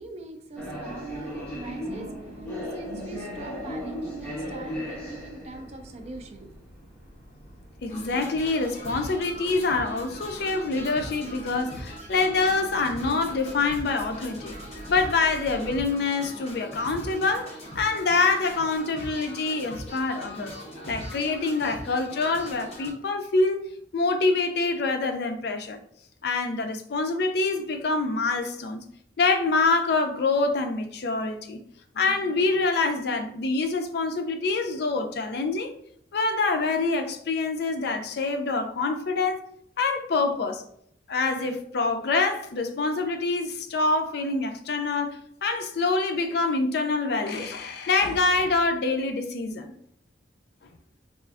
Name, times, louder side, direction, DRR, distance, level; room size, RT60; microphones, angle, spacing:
voice 1, 0.0-6.5, right 2 dB, 35° right, 0.4 m, -43 dB
sound 1, 0.6-15.9, equal, 10° left, 0.9 m, -39 dB
voice 2, 7.8-14.5 14.9-20.6 20.9-23.7 23.9-25.8 26.2-28.8 29.2-31.6 31.9-35.7 36.1-39.4 39.8-40.6 41.1-49.7, left 3 dB, 60° left, 0.4 m, -26 dB
sound 2, 7.9-22.9, equal, 35° left, 0.9 m, -40 dB
4.2 x 2.4 x 2.4 m
head